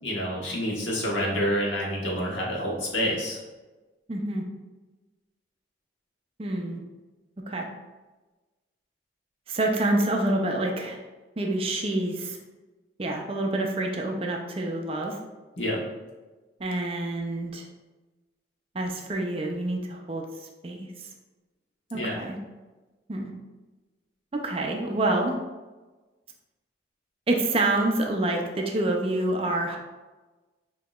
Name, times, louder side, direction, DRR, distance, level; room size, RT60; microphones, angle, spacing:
voice 1, 0.0-3.4 15.6-15.8 21.9-22.1, equal, 85° left, -3 dB, 1.2 m, -28 dB
voice 2, 4.1-4.5 6.4-6.8 7.5-7.7 9.5-11.0 11.4-12.4 13.0-15.2 16.6-17.7 18.7-20.3 20.6-21.1 21.9-22.4 23.1-23.3 24.3-25.4 27.3-29.8, right 2 dB, 30° right, 1 dB, 0.4 m, -27 dB
6.3 x 2.9 x 2.3 m, 1.2 s
head